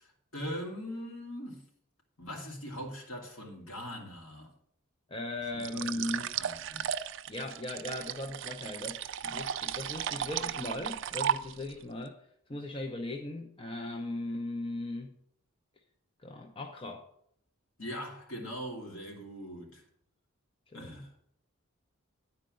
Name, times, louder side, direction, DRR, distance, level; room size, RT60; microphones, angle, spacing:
voice 1, 0.0-1.6 2.2-4.5 5.5-6.9 17.8-19.8 20.7-21.1, equal, 65° left, 2.6 m, -41 dB
voice 2, 5.1-6.4 7.3-12.2 12.5-15.2 16.2-17.0 20.7-20.9, left 1 dB, 25° left, 0.6 m, -38 dB
sound 1, 5.6-11.8, right 9 dB, 55° right, 0.4 m, -35 dB
10.0 x 4.4 x 7.6 m
head